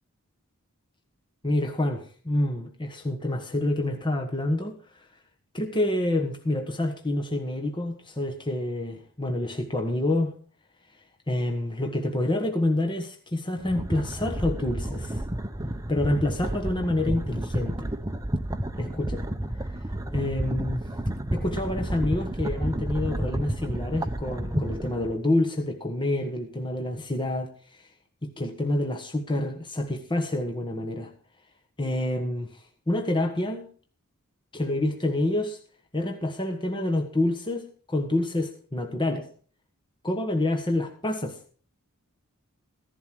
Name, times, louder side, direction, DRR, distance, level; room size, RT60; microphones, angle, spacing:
voice 1, 1.4-4.8 5.5-10.3 11.3-15.2 15.9-17.9 18.8-19.2 20.1-20.8 21.3-27.8 28.2-31.1 31.8-33.7 34.5-35.6 35.9-39.3 40.0-41.4, left 1 dB, 20° left, 1.4 m, -27 dB
sound 1, 13.6-25.1, right 1 dB, 15° right, 0.8 m, -31 dB
16.0 x 11.0 x 4.6 m
head